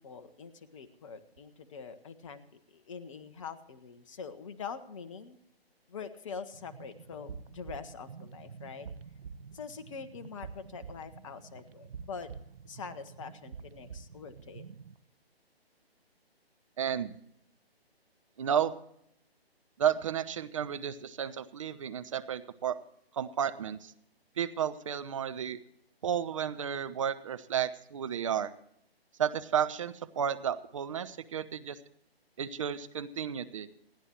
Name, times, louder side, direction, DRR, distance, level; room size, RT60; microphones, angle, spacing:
voice 1, 0.0-5.4 5.9-8.9 9.5-12.3 12.7-14.6, left 6 dB, 30° left, 10 dB, 1.1 m, -44 dB
sound 1, 6.5-15.0, right 6 dB, 65° right, 0.9 m, -48 dB
voice 2, 16.8-17.1 18.4-18.7 19.8-22.8 23.1-23.9 24.4-25.6 26.0-28.5 29.2-31.8 32.4-33.7, right 8 dB, 30° right, 11 dB, 0.8 m, -32 dB
28.0 x 9.8 x 3.0 m, 0.74 s
figure-of-eight pair, 145°, 31 cm